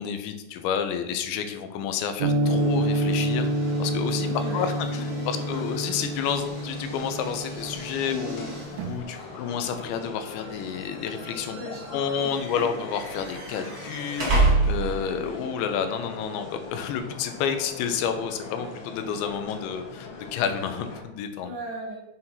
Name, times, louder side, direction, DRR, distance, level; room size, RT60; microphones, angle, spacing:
voice 1, 0.0-4.3 4.5-4.7 5.3-8.5 8.8-11.6 11.9-21.5, left 7 dB, 80° left, 7 dB, 3.0 m, -30 dB
sound 1, 2.2-9.0, right 1 dB, 90° right, 3.2 m, -28 dB
sound 2, 2.4-21.0, left 4 dB, 55° left, 2.7 m, -42 dB
sound 3, 2.4-15.2, right 3 dB, 35° right, 1.5 m, -32 dB
voice 2, 4.2-5.9 7.9-8.5 9.0-9.4 11.5-12.8 21.4-22.0, equal, 55° right, -2 dB, 2.8 m, -39 dB
7.8 x 6.3 x 5.7 m, 0.93 s
omnidirectional pair, 5.4 m